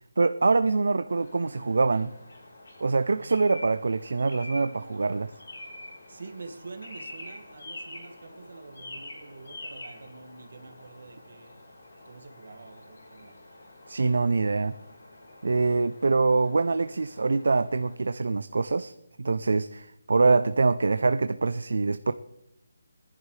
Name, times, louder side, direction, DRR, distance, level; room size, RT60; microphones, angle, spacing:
voice 1, 0.2-2.1 2.8-5.3 13.9-14.8 15.4-18.9 19.2-22.1, right 3 dB, 70° right, 11 dB, 0.5 m, -24 dB
sound 1, 1.1-18.0, left 1 dB, 65° left, 4.5 m, -47 dB
voice 2, 6.1-11.6 12.1-13.3, right 3 dB, 55° right, 4 dB, 2.0 m, -46 dB
21.5 x 11.0 x 3.3 m, 0.85 s
hypercardioid pair, 180°, 0 cm